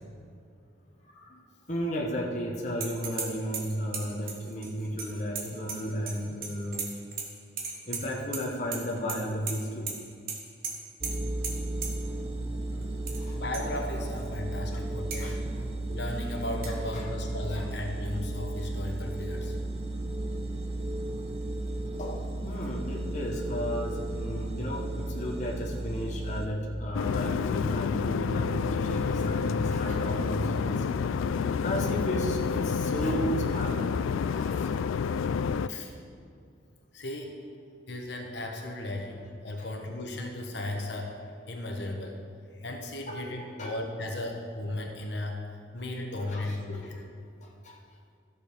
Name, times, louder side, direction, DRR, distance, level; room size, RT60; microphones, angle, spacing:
voice 1, 1.0-6.8 7.9-9.9 11.4-11.5 11.8-12.3 12.7-13.4 14.7-14.8 15.2-15.6 16.7-17.1 17.5-17.7 22.0-31.2 31.6-34.0 34.3-34.8 35.0-35.2 39.6-39.7 43.1-43.8 46.2-46.6 47.4-47.8, equal, 35° left, -2 dB, 1.1 m, -34 dB
sound 1, 2.8-3.3 3.5-6.2 6.4-7.3 7.6-8.4 8.7-9.2 9.5-9.6 9.9-10.0 10.3-10.4 10.6-10.7 11.0-11.1 11.4-11.5 11.8-11.9 12.8-13.2 13.5-13.6 14.2-14.3 15.1-15.2 16.6-16.7, right 5 dB, 50° right, 1.4 m, -35 dB
sound 2, 11.0-26.5, right 2 dB, 30° right, 0.7 m, -34 dB
voice 2, 13.3-15.4 15.9-19.6 35.7-35.9 36.9-37.3 37.9-41.1 41.5-42.2 42.5-45.4 45.7-47.0, left 1 dB, 60° left, 1 dB, 1.2 m, -35 dB
sound 3, 26.9-35.7, left 6 dB, 85° left, 0.3 m, -29 dB
13.5 x 6.8 x 5.1 m, 2.4 s
head